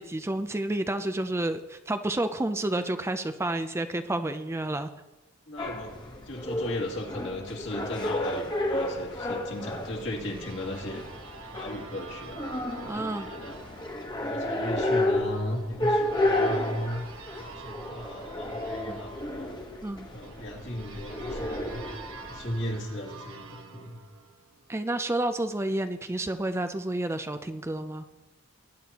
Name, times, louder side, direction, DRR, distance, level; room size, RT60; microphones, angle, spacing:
voice 1, 0.0-4.9 9.6-9.7 12.9-13.3 18.9-19.0 19.8-20.1 24.7-28.1, right 1 dB, 10° right, 8 dB, 0.4 m, -30 dB
voice 2, 5.5-6.0 6.3-11.0 11.5-13.6 14.2-17.0 17.4-19.6 20.1-21.8 22.3-24.0, left 1 dB, 60° left, 0 dB, 2.4 m, -36 dB
sound 1, 5.6-22.8, left 1 dB, 20° left, 1.2 m, -32 dB
sound 2, 9.2-24.9, right 4 dB, 70° right, 1.2 m, -47 dB
20.0 x 10.0 x 2.9 m, 1.1 s
head